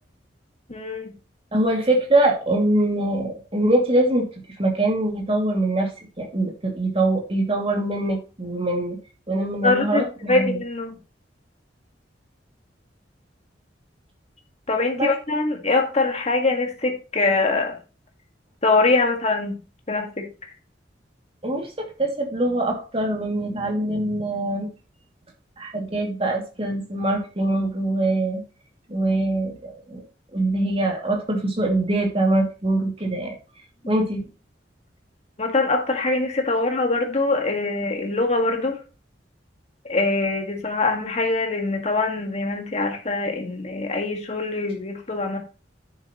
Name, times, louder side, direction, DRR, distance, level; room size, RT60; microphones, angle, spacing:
voice 1, 0.7-1.1 9.6-10.0 10.3-11.0 14.7-17.8 18.6-19.6 19.9-20.3 33.8-34.0 35.4-38.8 39.9-45.4, left 3 dB, 40° left, 1.8 m, -23 dB
voice 2, 1.5-4.3 4.6-5.9 6.2-9.0 9.3-10.6 15.0-15.1 21.4-24.7 25.6-28.4 28.9-30.0 30.3-33.3 33.9-34.2, right 1 dB, 30° right, 2.5 m, -23 dB
10.5 x 7.4 x 3.1 m
head